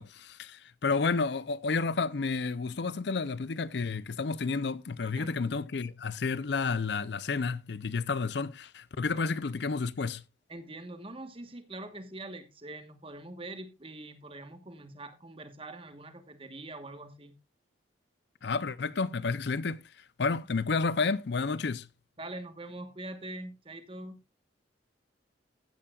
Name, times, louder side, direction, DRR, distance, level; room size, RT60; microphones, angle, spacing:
voice 1, 0.0-10.2 18.4-19.8 20.2-21.9, left 4 dB, 60° left, 0.5 m, -31 dB
voice 2, 5.0-5.3 10.5-17.4 22.2-24.2, right 2 dB, 30° right, 1.2 m, -43 dB
15.5 x 8.5 x 2.4 m
head